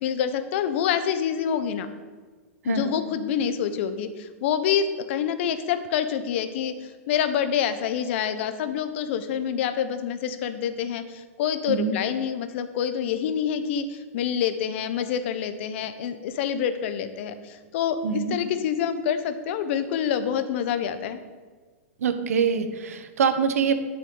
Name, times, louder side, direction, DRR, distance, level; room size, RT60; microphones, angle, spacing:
voice 1, 0.0-1.9 2.6-6.8 7.1-21.2, left 8 dB, 55° left, 10 dB, 0.8 m, -27 dB
voice 2, 2.6-3.0 11.7-12.0 18.0-18.4 22.0-23.7, right 6 dB, 80° right, 9 dB, 1.1 m, -24 dB
11.0 x 6.5 x 3.9 m, 1.4 s
hypercardioid pair, 135°, 8 cm